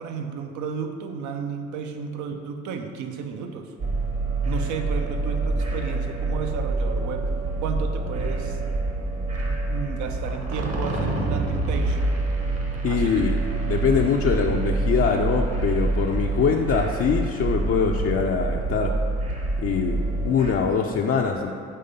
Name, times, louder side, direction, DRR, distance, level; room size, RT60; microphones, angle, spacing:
voice 1, 0.0-3.7 4.4-7.3 7.6-8.6 9.4-12.2 12.9-13.4, right 6 dB, 70° right, 5 dB, 0.6 m, -33 dB
sound 1, 3.8-20.5, right 2 dB, 50° right, 1.3 m, -26 dB
voice 2, 12.8-13.4 13.7-19.0 19.6-21.5, left 6 dB, 45° left, 0 dB, 0.5 m, -23 dB
5.5 x 3.4 x 5.2 m, 2.4 s
hypercardioid pair, 50°, 31 cm